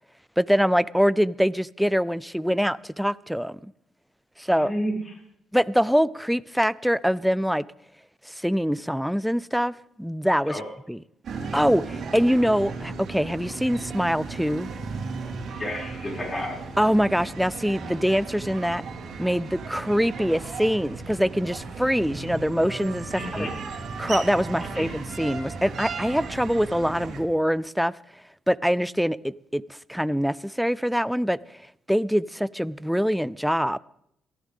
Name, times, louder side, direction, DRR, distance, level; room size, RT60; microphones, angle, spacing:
voice 1, 0.4-3.7 4.4-4.7 5.5-7.6 8.3-10.6 10.9-11.0 11.5-14.7 16.8-18.8 19.2-23.5 24.0-27.9 28.5-31.6 31.9-33.8, equal, ahead, 0.5 m, -24 dB
voice 2, 4.6-5.1 10.5-10.6 15.6-16.7 23.1-23.5 24.7-24.9, equal, 25° left, 6.5 m, -31 dB
sound 1, 11.2-27.2, right 4 dB, 60° right, 4.6 m, -36 dB
23.0 x 15.0 x 3.7 m
cardioid pair, 90°, 0 cm